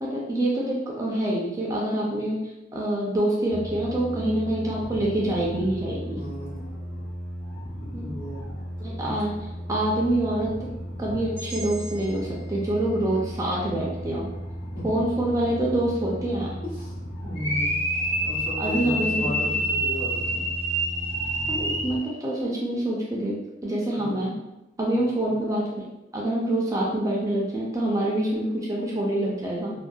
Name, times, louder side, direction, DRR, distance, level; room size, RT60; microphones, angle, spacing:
voice 1, 0.0-2.4 2.7-6.2 7.9-8.1 8.8-9.3 9.7-10.5 11.0-14.3 14.8-16.6 18.6-19.6 21.5-23.3 23.6-24.3 24.8-25.8 26.1-29.7, right 1 dB, 20° right, -4 dB, 0.3 m, -26 dB
sound 1, 3.5-22.0, equal, 75° left, 1.0 m, -36 dB
voice 2, 6.1-7.0 8.0-8.5 9.0-9.2 14.7-15.0 16.6-16.9 17.2-17.8 18.2-20.5 24.0-24.3 24.9-25.3, left 1 dB, 50° left, -7 dB, 1.0 m, -35 dB
sound 2, 11.4-15.4, right 2 dB, 10° left, 0.8 m, -46 dB
sound 3, 17.3-22.1, right 1 dB, 30° left, 0.5 m, -27 dB
2.6 x 2.1 x 2.3 m, 0.94 s
head